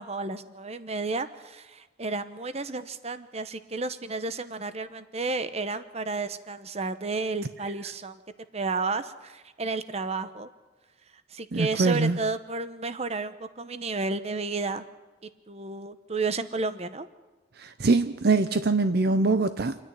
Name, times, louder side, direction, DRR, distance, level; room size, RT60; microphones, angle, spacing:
voice 1, 0.0-8.2 8.5-10.5 11.3-14.8 15.5-17.1, right 3 dB, 35° right, 12 dB, 0.9 m, -32 dB
voice 2, 11.5-12.2 17.6-19.8, right 3 dB, 60° right, 10 dB, 0.7 m, -23 dB
27.0 x 9.9 x 10.0 m, 1.2 s
head